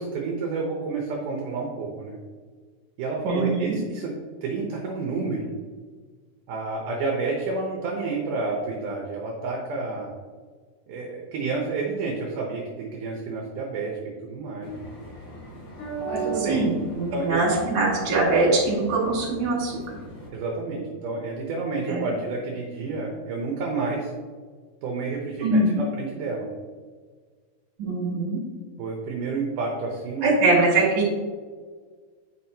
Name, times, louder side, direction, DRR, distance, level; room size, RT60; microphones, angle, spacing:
voice 1, 0.0-2.2 3.0-5.6 6.5-10.1 10.9-14.9 16.1-16.7 17.1-17.4 20.3-24.1 24.8-26.5 28.8-30.2, right 3 dB, 70° right, -1 dB, 2.0 m, -30 dB
voice 2, 3.2-3.8 16.5-19.8 21.9-22.1 25.4-25.8 27.8-28.4 30.2-31.1, right 2 dB, 40° right, -4 dB, 2.3 m, -22 dB
sound 1, 14.6-20.3, right 3 dB, 60° left, 3.1 m, -36 dB
7.7 x 6.1 x 2.9 m, 1.5 s
omnidirectional pair, 4.6 m